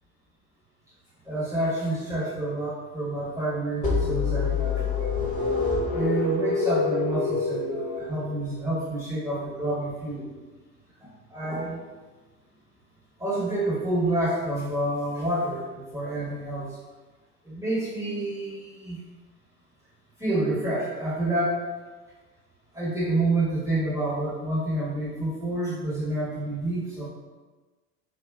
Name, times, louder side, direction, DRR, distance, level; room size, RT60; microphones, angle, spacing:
voice 1, 1.2-5.2 5.9-10.3 11.0-11.8 13.2-16.8 17.4-19.0 20.2-21.6 22.7-27.1, right 1 dB, 5° right, -10 dB, 1.0 m, -28 dB
sound 1, 3.8-8.6, left 4 dB, 40° left, 1.4 m, -26 dB
3.4 x 2.4 x 2.3 m, 1.3 s
figure-of-eight pair, 65°, 47 cm